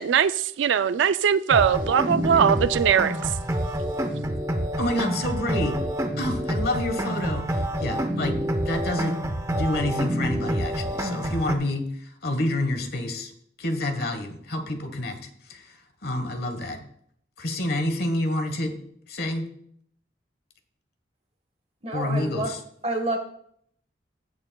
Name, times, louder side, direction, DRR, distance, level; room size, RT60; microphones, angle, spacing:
voice 1, 0.0-3.1, right 8 dB, 85° right, 0.4 m, -21 dB
sound 1, 1.5-11.6, equal, 15° right, 0.7 m, -27 dB
voice 2, 4.8-5.8 6.2-9.2 9.5-13.3 13.6-15.2 15.5-15.7 16.0-16.8 17.4-18.7 19.1-19.5 21.9-22.6, left 1 dB, 55° left, 1.3 m, -28 dB
voice 3, 21.8-22.5 22.8-23.2, right 2 dB, 35° right, 1.3 m, -28 dB
15.5 x 8.6 x 2.3 m
head